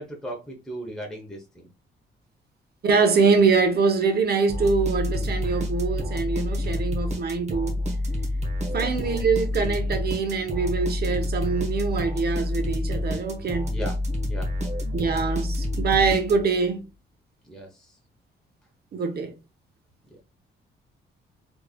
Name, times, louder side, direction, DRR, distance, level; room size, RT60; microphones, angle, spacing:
voice 1, 0.0-1.7 8.7-8.9 13.7-14.0 14.3-14.5 17.4-18.0 20.1-20.2, equal, 5° left, 0.9 m, -37 dB
voice 2, 2.8-7.8 8.7-13.7 14.9-16.8 18.9-19.3, right 4 dB, 50° right, 0.9 m, -24 dB
sound 1, 4.5-16.7, left 1 dB, 35° right, 1.3 m, -28 dB
3.5 x 3.3 x 2.3 m
cardioid pair, 90°, 20 cm